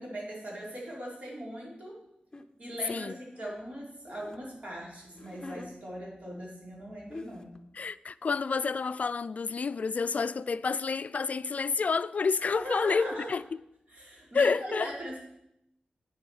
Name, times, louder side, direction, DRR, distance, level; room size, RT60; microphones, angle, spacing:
voice 1, 0.0-2.0 2.6-7.5 12.5-13.4 13.9-15.2, equal, 55° right, 4.5 m, -40 dB
sound 1, 2.3-2.5 3.1-4.4 5.0-5.7 6.7-6.8 7.1-7.6, left 2 dB, 25° left, 0.8 m, -45 dB
voice 2, 7.7-13.4 14.3-14.9, left 5 dB, 55° left, 0.3 m, -29 dB
9.1 x 7.7 x 6.3 m
wide cardioid pair, 95°, 3 cm